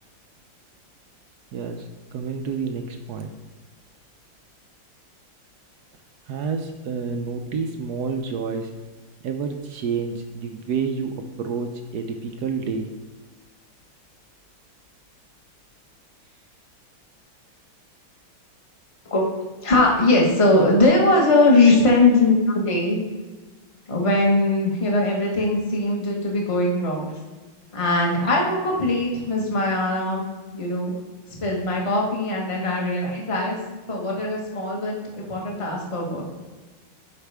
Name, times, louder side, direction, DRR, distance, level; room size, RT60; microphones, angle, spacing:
voice 1, 1.5-3.3 6.3-8.7 9.2-12.9, right 5 dB, 70° right, 5 dB, 1.0 m, -29 dB
voice 2, 19.6-23.0 23.9-27.1 27.7-30.9 31.4-33.6 33.9-36.2, left 2 dB, 20° left, -1 dB, 1.2 m, -20 dB
12.0 x 5.0 x 3.4 m, 1.3 s
omnidirectional pair, 2.2 m